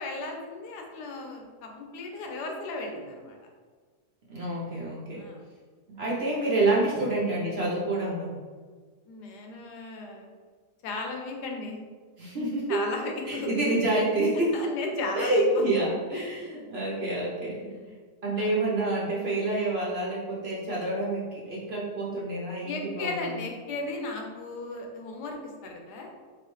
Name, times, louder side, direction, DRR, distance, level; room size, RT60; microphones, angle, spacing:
voice 1, 0.0-3.4 5.2-5.4 7.0-7.1 9.1-10.3 10.8-11.8 12.7-13.5 14.5-15.6 16.1-16.7 17.0-17.1 17.7-17.9 18.4-18.5 22.6-26.1, left 3 dB, 85° left, 2 dB, 1.3 m, -36 dB
voice 2, 4.3-5.2 5.9-8.3 12.2-12.8 13.2-14.6 15.1-17.8 18.2-23.4, right 2 dB, 45° right, -5 dB, 0.9 m, -28 dB
4.8 x 3.2 x 3.1 m, 1.5 s
omnidirectional pair, 1.7 m